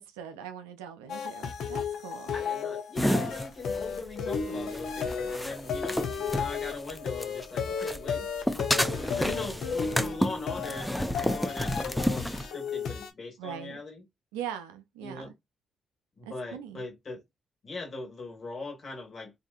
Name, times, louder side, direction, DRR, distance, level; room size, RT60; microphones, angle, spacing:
voice 1, 0.0-2.3 13.4-13.8 14.3-15.3 16.5-16.8, right 9 dB, 85° right, 0.4 m, -41 dB
sound 1, 1.1-13.1, left 6 dB, 70° left, 0.5 m, -34 dB
voice 2, 2.3-8.7 9.1-14.0 15.0-15.3 16.2-17.2 17.6-19.3, left 3 dB, 55° left, 1.5 m, -41 dB
sound 2, 3.0-7.5 7.8-12.5, equal, 5° left, 0.5 m, -30 dB
2.7 x 2.5 x 2.4 m
hypercardioid pair, 40°, 0 cm